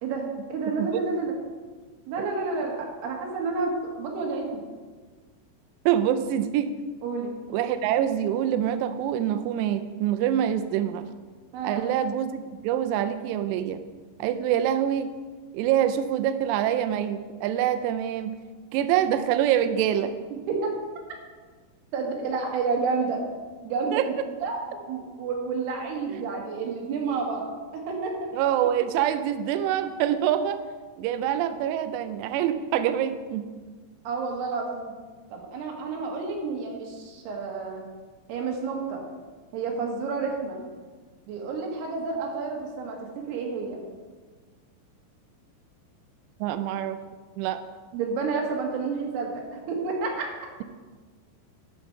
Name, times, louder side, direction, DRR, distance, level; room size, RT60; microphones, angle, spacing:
voice 1, 0.0-1.3 2.1-3.7 4.0-4.6 7.0-7.4 11.5-11.8 20.5-20.7 21.9-23.2 23.6-24.1 24.4-28.3 34.0-34.9 35.3-37.8 38.3-39.0 39.5-40.6 41.3-43.8 47.9-50.3, right 4 dB, 65° right, 0 dB, 3.3 m, -30 dB
voice 2, 5.9-6.7 7.5-11.1 11.6-13.8 14.2-15.1 15.5-18.4 18.7-20.2 23.9-24.1 26.1-26.2 28.3-30.6 31.0-33.6 46.4-47.0 47.4-47.6, right 10 dB, 90° right, 10 dB, 2.4 m, -25 dB
12.0 x 6.6 x 4.6 m, 1.4 s
omnidirectional pair, 5.5 m